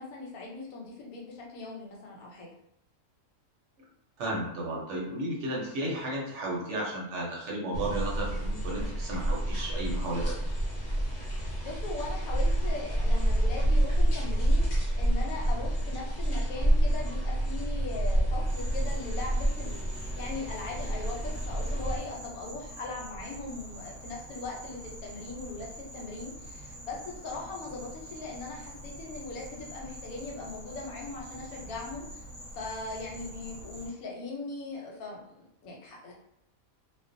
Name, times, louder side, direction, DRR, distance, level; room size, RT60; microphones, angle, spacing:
voice 1, 0.0-2.5 11.6-14.7 14.9-19.8 20.2-25.7 25.9-32.2 32.5-36.1, left 3 dB, 90° left, -1 dB, 1.1 m, -40 dB
voice 2, 4.2-10.4, right 1 dB, 65° right, -3 dB, 0.9 m, -33 dB
sound 1, 7.7-22.0, right 1 dB, 50° left, 0.5 m, -28 dB
Insect, 18.5-33.9, right 1 dB, 10° left, 1.1 m, -45 dB
2.5 x 2.1 x 2.5 m, 0.77 s
omnidirectional pair, 1.5 m